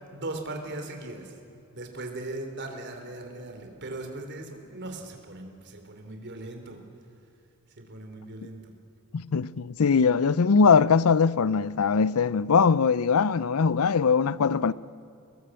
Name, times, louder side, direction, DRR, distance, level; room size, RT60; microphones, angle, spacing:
voice 1, 0.1-1.3 1.7-6.8 7.8-8.7, right 2 dB, 50° right, 3.2 m, -38 dB
voice 2, 9.1-14.7, left 5 dB, 75° left, 0.5 m, -21 dB
25.0 x 20.5 x 7.7 m
head